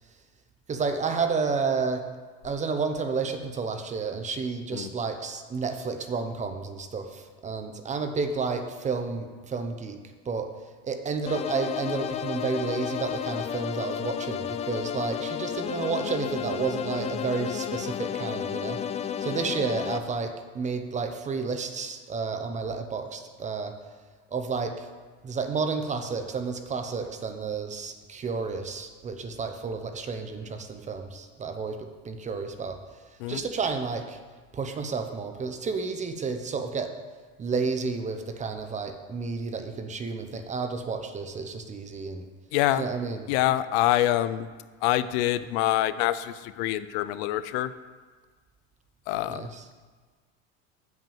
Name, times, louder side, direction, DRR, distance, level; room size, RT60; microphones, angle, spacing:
voice 1, 0.7-2.0 2.4-10.5 10.8-18.8 19.2-23.7 24.3-24.9 25.2-31.8 32.0-32.8 33.3-34.2 34.5-36.9 37.4-42.3 42.8-43.3 49.3-49.6, right 4 dB, 20° right, 7 dB, 0.8 m, -31 dB
sound 1, 11.3-20.0, left 9 dB, 20° left, 0.3 m, -32 dB
voice 2, 42.5-42.9 43.3-44.5 44.8-47.7 49.1-49.4, left 14 dB, 70° left, 14 dB, 0.5 m, -25 dB
7.5 x 5.9 x 7.3 m, 1.4 s
supercardioid pair, 130°, 33 cm